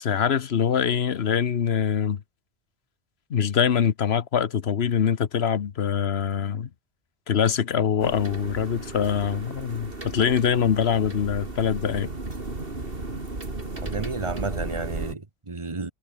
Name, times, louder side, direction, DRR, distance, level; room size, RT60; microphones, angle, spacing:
voice 1, 0.0-2.2 3.3-6.7 7.3-12.1, left 7 dB, 75° left, 1.2 m, -24 dB
sound 1, 8.0-15.1, right 2 dB, 60° right, 3.6 m, -35 dB
voice 2, 13.7-15.9, right 3 dB, 30° right, 1.5 m, -32 dB
omnidirectional pair, 1.1 m